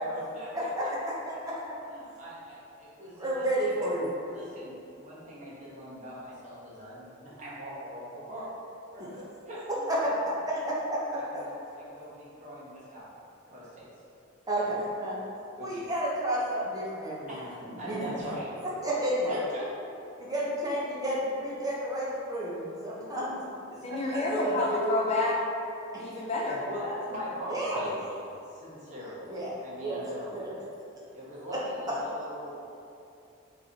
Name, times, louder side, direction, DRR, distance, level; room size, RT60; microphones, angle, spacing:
voice 1, 0.0-0.5 1.0-1.1 1.9-3.7 4.3-8.4 8.9-9.8 10.3-10.6 11.1-13.1 13.5-13.9 14.6-14.7 15.6-15.9 17.3-17.5 17.8-18.5 19.3-19.6 26.6-28.0 28.5-30.4 31.1-32.9, equal, 35° right, -8 dB, 1.0 m, -42 dB
voice 2, 0.5-1.7 3.2-4.1 9.0-9.1 9.9-10.1 10.5-11.4 14.5-15.2 15.6-18.1 18.8-19.4 20.2-23.4 23.9-24.5 25.9-26.0 27.5-27.8 29.3-29.5 29.8-30.5 31.5-31.6 31.9-32.0, right 1 dB, 15° right, -6 dB, 0.7 m, -31 dB
voice 3, 23.8-25.4 26.0-26.6, left 2 dB, 30° left, -3 dB, 0.3 m, -28 dB
5.3 x 3.1 x 2.8 m, 2.7 s
head